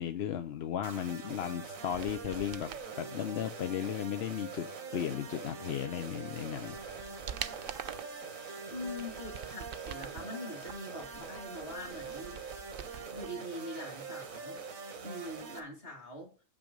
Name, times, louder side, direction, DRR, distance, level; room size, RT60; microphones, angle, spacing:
voice 1, 0.0-6.8, left 9 dB, 60° left, 8 dB, 0.8 m, -35 dB
sound 1, 0.8-15.6, right 5 dB, 85° right, 1.6 m, -44 dB
sound 2, 1.8-2.9 5.9-6.0 6.5-8.2 8.7-10.2 10.6-13.3 13.6-13.7, right 9 dB, 60° right, 0.6 m, -45 dB
Wind instrument woodwind instrument, 6.8-13.0, left 2 dB, 20° left, 0.5 m, -57 dB
voice 2, 8.7-12.4 13.1-14.6 15.0-16.3, left 1 dB, 45° left, 2 dB, 2.6 m, -43 dB
7.4 x 6.2 x 5.1 m, 0.37 s
omnidirectional pair, 1.4 m